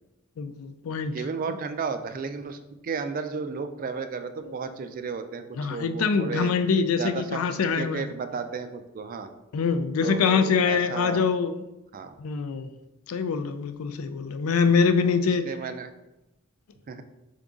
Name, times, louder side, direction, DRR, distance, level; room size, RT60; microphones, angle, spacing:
voice 1, 0.4-1.1 4.6-4.7 5.6-8.1 9.5-11.6 12.2-12.7 13.1-15.5, left 5 dB, 85° left, 0.4 m, -24 dB
voice 2, 1.1-6.5 7.0-9.3 10.0-11.2 11.9-12.1 15.0-15.1 15.4-15.9 16.9-17.0, right 5 dB, 40° right, 0.3 m, -33 dB
3.8 x 3.7 x 3.6 m
head